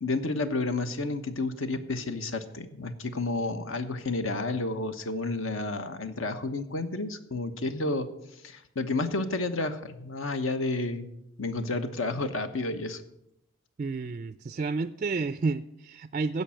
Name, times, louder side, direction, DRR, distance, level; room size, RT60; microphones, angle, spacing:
voice 1, 0.0-8.1 8.4-11.1 11.4-13.0, left 2 dB, 65° left, 9 dB, 1.1 m, -31 dB
voice 2, 13.8-16.4, right 4 dB, 35° right, 12 dB, 0.3 m, -30 dB
15.5 x 5.4 x 7.5 m, 0.82 s
head